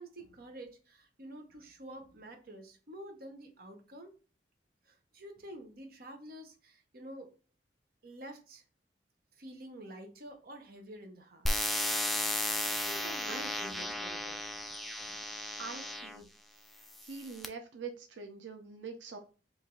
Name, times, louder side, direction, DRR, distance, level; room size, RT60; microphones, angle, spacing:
voice 1, 0.0-4.1 4.9-7.3 8.0-8.6 9.4-11.5 12.8-14.4 14.6-14.7 15.1-15.2, right 1 dB, 55° right, 5 dB, 0.8 m, -49 dB
sound 1, 11.5-16.2 16.9-17.5, left 1 dB, ahead, 0.3 m, -34 dB
voice 2, 13.3-13.9 15.6-16.3 17.0-19.2, right 5 dB, 90° right, 5 dB, 0.6 m, -44 dB
4.7 x 2.6 x 3.7 m, 0.35 s
head